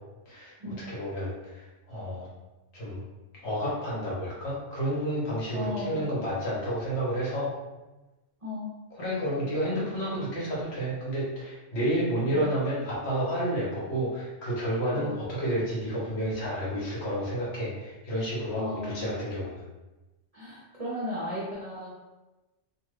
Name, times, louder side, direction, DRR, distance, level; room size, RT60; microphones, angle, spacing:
voice 1, 0.9-2.3 2.7-3.0 3.4-7.5 9.0-19.6, equal, 65° left, -6 dB, 1.2 m, -30 dB
voice 2, 5.5-6.0 8.4-8.7 12.3-12.5 14.9-15.1 18.5-19.0 20.3-21.9, left 1 dB, 40° right, -7 dB, 0.6 m, -35 dB
2.5 x 2.4 x 3.2 m, 1.1 s
omnidirectional pair, 1.2 m